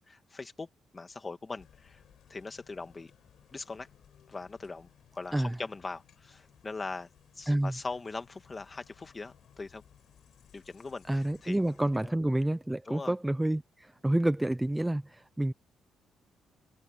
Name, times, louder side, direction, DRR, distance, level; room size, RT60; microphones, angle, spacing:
voice 1, 0.0-2.0 2.3-3.1 3.5-3.9 4.3-7.1 7.3-9.8 10.5-11.6 12.0-12.1 12.9-13.1, left 3 dB, 25° left, 2.2 m, -41 dB
sound 1, 1.6-12.1, left 9 dB, 65° left, 7.2 m, -61 dB
voice 2, 11.1-15.5, right 1 dB, 10° right, 0.7 m, -29 dB
cardioid pair, 90°, 0 cm